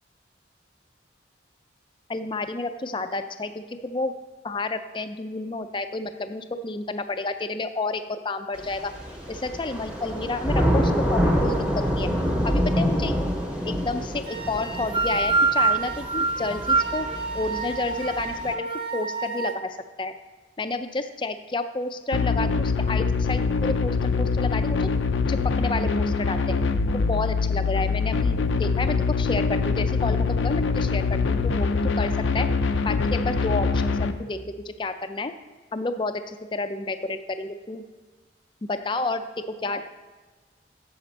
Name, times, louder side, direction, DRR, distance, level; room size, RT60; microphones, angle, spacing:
voice 1, 2.1-4.1 4.4-8.9 9.3-11.6 12.0-12.1 12.4-13.2 13.7-17.1 17.3-19.7 20.0-20.1 20.6-24.9 25.3-26.6 26.9-32.5 32.8-35.3 35.7-37.8 38.6-39.2 39.6-39.8, left 2 dB, 25° left, 9 dB, 0.4 m, -30 dB
Thunder / Rain, 8.6-18.5, equal, 5° right, 0.9 m, -27 dB
sound 1, 14.3-19.6, right 4 dB, 25° right, 0.6 m, -26 dB
sound 2, 22.1-34.1, left 4 dB, 85° left, 0.5 m, -24 dB
7.8 x 6.7 x 4.1 m, 1.3 s
head